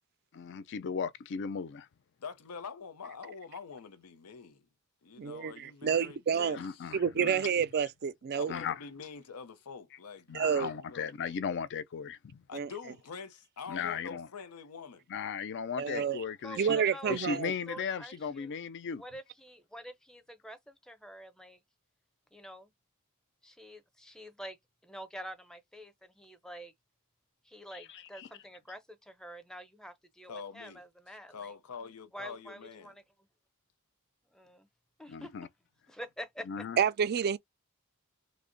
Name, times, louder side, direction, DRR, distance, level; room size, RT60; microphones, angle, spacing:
voice 1, 0.3-1.9 6.5-7.5 8.5-8.8 10.3-12.4 13.7-14.3 15.1-16.8 17.1-19.0 28.2-28.3 35.1-35.5 36.5-36.8, left 6 dB, 55° left, 0.4 m, -36 dB
voice 2, 2.2-4.7 5.0-7.0 8.3-11.1 12.5-15.1 30.3-30.8 31.3-33.0, left 5 dB, 90° left, 0.7 m, -45 dB
voice 3, 5.2-6.6 6.9-8.5 10.3-10.7 12.5-12.7 15.8-16.2 16.6-17.5 36.8-37.4, right 7 dB, 45° right, 0.3 m, -29 dB
voice 4, 16.4-17.4 17.7-18.5 19.0-21.6 22.3-22.7 23.4-24.6 24.8-26.7 27.4-31.5 32.1-33.3 34.3-34.7 35.0-35.5 35.9-36.7, equal, 5° left, 0.5 m, -47 dB
3.2 x 2.1 x 3.8 m
head